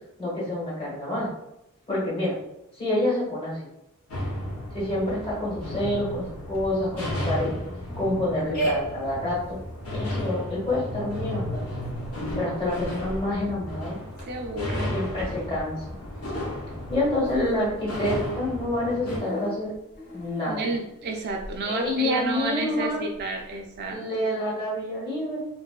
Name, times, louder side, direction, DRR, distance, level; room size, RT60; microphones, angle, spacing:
voice 1, 0.2-1.3 1.9-2.3 2.7-3.7 4.7-7.5 8.0-9.6 10.0-11.6 12.3-14.0 14.9-16.0 16.9-19.7 20.1-20.6 21.7-23.0 23.9-25.5, left 1 dB, 25° left, -7 dB, 1.1 m, -27 dB
sound 1, 4.1-19.2, left 1 dB, 80° left, 0.7 m, -34 dB
sound 2, 4.4-23.9, right 2 dB, 45° left, 0.8 m, -40 dB
voice 2, 14.3-14.9 20.5-24.0, right 3 dB, 50° right, 2 dB, 0.3 m, -31 dB
2.5 x 2.2 x 2.3 m, 0.86 s
head